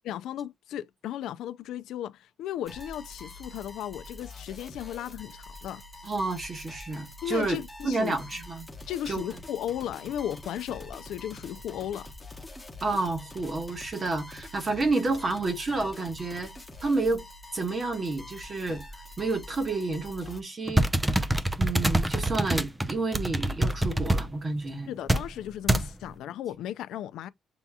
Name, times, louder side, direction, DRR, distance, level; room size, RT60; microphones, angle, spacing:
voice 1, 0.1-5.8 7.2-8.2 8.9-12.1 24.9-27.3, left 11 dB, 85° left, 0.4 m, -35 dB
sound 1, 2.6-20.4, left 2 dB, 10° left, 0.9 m, -45 dB
voice 2, 6.0-7.6 7.8-8.7 9.1-9.3 12.8-16.5 16.8-17.2 17.5-18.8 19.2-20.9 21.6-24.9 25.8-25.9, right 3 dB, 25° right, 1.1 m, -30 dB
sound 2, 20.7-24.3 25.1-25.3 25.7-25.9, right 1 dB, 10° right, 0.4 m, -25 dB
6.9 x 2.8 x 2.2 m
cardioid pair, 170°, 0 cm